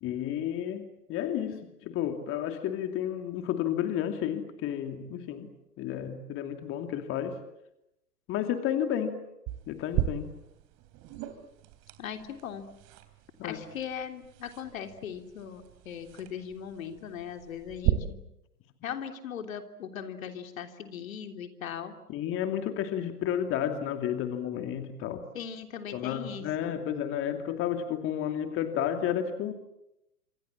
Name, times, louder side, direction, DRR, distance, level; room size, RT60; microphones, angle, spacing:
voice 1, 0.0-5.5 5.8-7.4 8.3-9.2 9.7-10.3 13.4-13.6 22.1-25.2 25.9-29.5, left 10 dB, 25° left, 7 dB, 2.6 m, -31 dB
sound 1, 9.5-17.9, right 15 dB, 35° right, 3.4 m, -37 dB
voice 2, 12.0-12.7 13.4-18.2 18.8-22.0 25.3-26.8, left 8 dB, 60° left, 6 dB, 3.4 m, -39 dB
27.0 x 26.0 x 7.5 m, 0.84 s
figure-of-eight pair, 115°, 46 cm